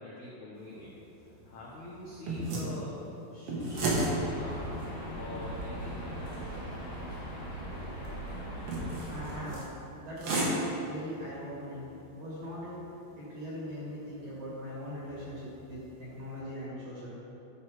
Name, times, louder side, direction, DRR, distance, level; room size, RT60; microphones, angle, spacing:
voice 1, 0.0-3.0 3.3-4.7 5.2-6.4, left 2 dB, 75° left, -6 dB, 1.8 m, -44 dB
sound 1, 0.6-16.4, right 2 dB, 75° right, 1.3 m, -38 dB
sound 2, 3.7-9.5, right 1 dB, 30° left, 1.3 m, -39 dB
voice 2, 9.1-9.6 10.0-12.8 13.2-17.1, left 1 dB, 55° right, -7 dB, 2.1 m, -40 dB
12.5 x 4.7 x 4.8 m, 2.9 s
omnidirectional pair, 4.8 m